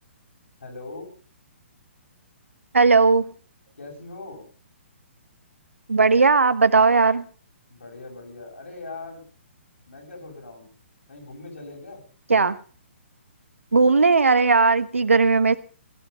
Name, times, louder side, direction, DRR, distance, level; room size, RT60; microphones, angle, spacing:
voice 1, 0.6-1.1 3.8-4.4 7.7-9.3 9.9-10.7 11.1-12.0, left 3 dB, 75° left, 8.0 m, -40 dB
voice 2, 2.7-3.3 5.9-7.2 12.3-12.6 13.7-15.6, right 4 dB, 80° right, 1.2 m, -17 dB
16.5 x 12.5 x 5.4 m
figure-of-eight pair, 130°, 7 cm